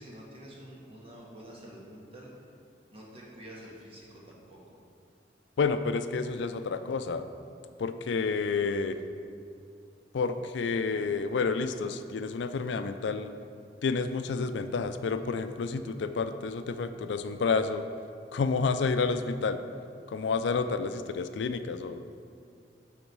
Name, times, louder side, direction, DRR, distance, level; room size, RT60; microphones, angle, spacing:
voice 1, 0.0-2.3 2.9-4.8, equal, 30° right, -4 dB, 1.6 m, -48 dB
voice 2, 5.6-7.2 7.8-9.0 10.1-13.3 13.8-17.8 18.3-19.6 20.1-22.1, left 4 dB, 80° left, 10 dB, 0.4 m, -29 dB
10.5 x 4.0 x 4.7 m, 2.4 s
head